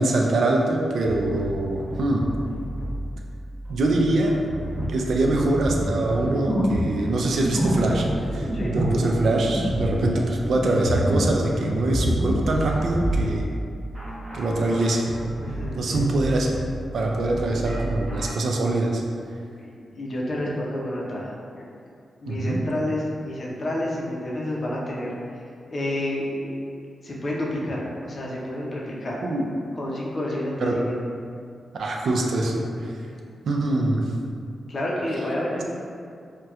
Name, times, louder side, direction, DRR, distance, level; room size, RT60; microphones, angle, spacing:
voice 1, 0.0-2.2 3.7-4.4 4.9-8.1 8.3-13.5 14.3-15.0 15.8-16.6 16.9-19.0 22.3-22.6 29.2-29.5 30.6-30.8 31.7-32.9 33.5-34.0, right 2 dB, 70° right, 0 dB, 0.3 m, -24 dB
sound 1, 1.1-18.3, right 1 dB, 35° right, 1.1 m, -33 dB
sound 2, 5.6-11.4 11.6-13.2, equal, 15° right, 0.6 m, -26 dB
voice 2, 15.4-16.1 19.6-21.6 22.2-25.4 25.7-26.6 27.0-29.2 29.8-31.0 33.1-33.2 34.7-35.6, left 1 dB, 40° left, -4 dB, 0.5 m, -29 dB
4.1 x 2.2 x 2.4 m, 2.3 s
wide cardioid pair, 145°, 0 cm